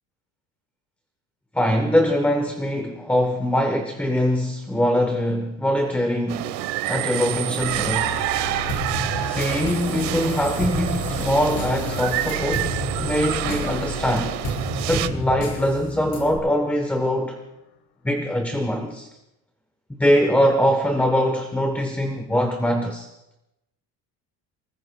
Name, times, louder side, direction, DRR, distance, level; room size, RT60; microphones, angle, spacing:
voice 1, 1.5-6.5 6.9-8.1 9.2-14.4 14.9-17.4 18.0-19.1 20.0-23.1, equal, 5° left, 4 dB, 1.0 m, -22 dB
sound 1, 6.3-15.1, right 14 dB, 85° right, 1.1 m, -28 dB
sound 2, 7.6-17.6, left 8 dB, 75° left, 1.5 m, -37 dB
sound 3, 8.7-16.4, left 1 dB, 60° left, 4.9 m, -31 dB
29.0 x 20.5 x 2.3 m, 0.90 s
cardioid pair, 170°, 39 cm